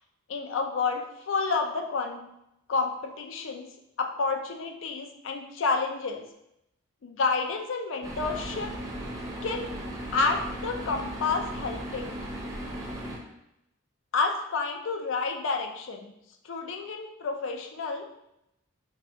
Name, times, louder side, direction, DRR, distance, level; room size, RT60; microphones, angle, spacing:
voice 1, 0.3-2.3 2.7-3.7 4.0-6.3 7.0-8.7 9.4-9.7 10.1-12.2 14.1-16.1 16.4-18.0, left 4 dB, 60° left, 4 dB, 0.4 m, -30 dB
sound 1, 8.0-13.2, right 1 dB, 15° right, 0.7 m, -36 dB
4.7 x 2.3 x 3.4 m, 0.84 s
head